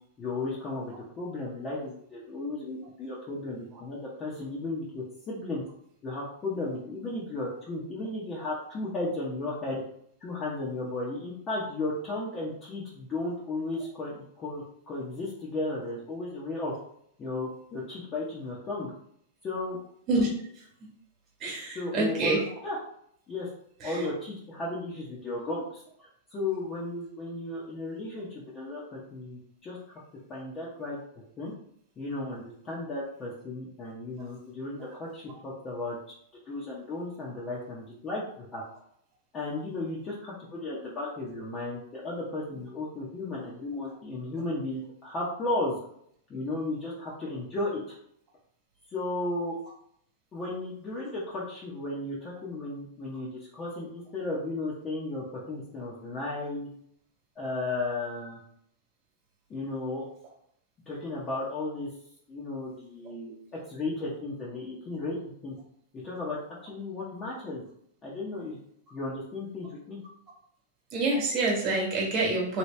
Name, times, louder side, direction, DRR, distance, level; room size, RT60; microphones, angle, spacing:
voice 1, 0.2-5.6 6.0-9.8 10.2-16.7 17.2-18.9 19.4-19.8 21.5-22.8 23.3-23.5 23.8-25.8 26.3-29.8 30.3-31.0 31.4-31.5 32.0-36.1 36.5-38.6 39.3-45.8 46.3-47.8 48.9-49.6 50.3-56.7 57.4-58.4 59.5-60.1 60.9-61.9 62.3-63.3 63.7-65.6 66.0-66.4 66.6-67.6 68.0-68.6 68.9-70.0, left 2 dB, 25° left, -6 dB, 0.8 m, -34 dB
voice 2, 21.4-22.4 70.9-72.6, right 2 dB, 35° right, -1 dB, 1.4 m, -26 dB
2.9 x 2.9 x 3.2 m, 0.68 s
supercardioid pair, 145°, 0 cm